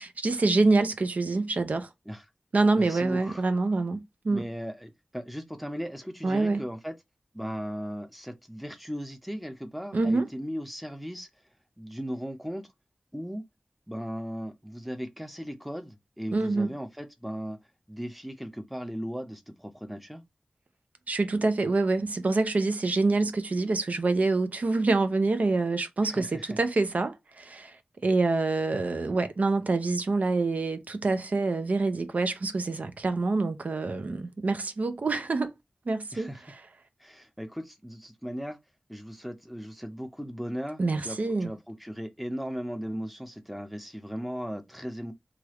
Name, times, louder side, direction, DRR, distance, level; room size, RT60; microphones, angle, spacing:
voice 1, 0.2-1.9 2.5-4.4 6.2-6.6 9.9-10.3 16.3-16.7 21.1-27.8 28.0-35.5 35.9-36.3 40.8-41.5, right 3 dB, 70° right, 0.5 m, -26 dB
voice 2, 2.8-3.4 4.3-6.9 7.3-11.3 11.8-12.7 13.1-13.4 13.9-17.6 17.9-20.2 26.0-26.6 36.1-36.5 37.0-38.6 38.9-45.1, equal, ahead, 0.6 m, -37 dB
3.2 x 2.4 x 2.9 m
wide cardioid pair, 75°, 3 cm